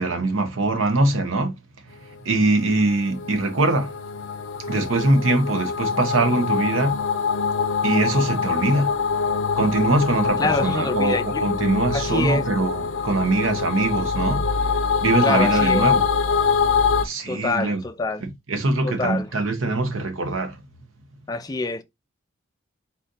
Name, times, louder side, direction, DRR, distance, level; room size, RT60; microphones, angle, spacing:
voice 1, 0.0-1.5 2.2-3.9 4.7-7.0 7.8-8.9 9.5-14.5 15.0-16.1 17.0-17.8 18.2-20.5, right 2 dB, 90° right, 0.9 m, -22 dB
sound 1, 2.2-17.1, left 5 dB, 70° left, 0.5 m, -24 dB
voice 2, 10.4-11.5 11.9-12.5 15.2-15.9 17.3-18.2 18.8-19.3 21.3-21.8, left 3 dB, 20° left, 0.4 m, -26 dB
4.1 x 2.7 x 3.8 m
head